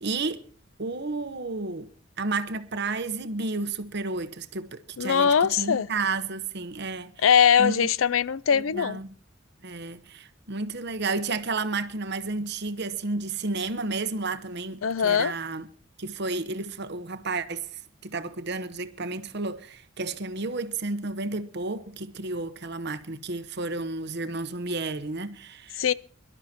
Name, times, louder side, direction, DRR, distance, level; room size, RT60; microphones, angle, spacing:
voice 1, 0.0-0.4 0.8-1.9 2.2-7.1 7.6-7.9 8.5-9.1 9.6-15.7 16.0-17.7 18.0-25.8, right 3 dB, 55° right, 1.1 m, -32 dB
voice 2, 5.0-5.9 7.2-9.0 14.8-15.3 25.8-25.9, left 7 dB, 80° left, 0.5 m, -21 dB
23.5 x 12.0 x 2.9 m
head